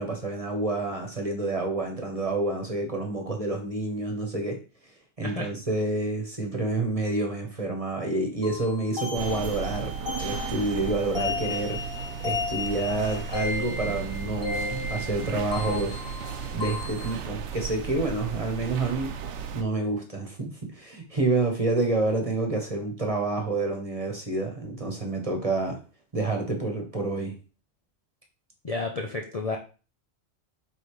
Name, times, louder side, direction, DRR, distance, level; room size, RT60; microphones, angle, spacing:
voice 1, 0.0-4.6 5.2-11.8 12.2-16.0 16.5-19.1 19.5-25.8 26.1-27.3, right 2 dB, 30° right, 3 dB, 1.3 m, -28 dB
sound 1, 8.4-17.2, left 3 dB, 20° left, 1.3 m, -35 dB
sound 2, 9.1-19.6, right 7 dB, 70° right, 0.9 m, -35 dB
voice 2, 28.6-29.6, left 3 dB, 35° left, 1 dB, 0.7 m, -31 dB
5.4 x 4.0 x 4.9 m, 0.35 s
omnidirectional pair, 1.3 m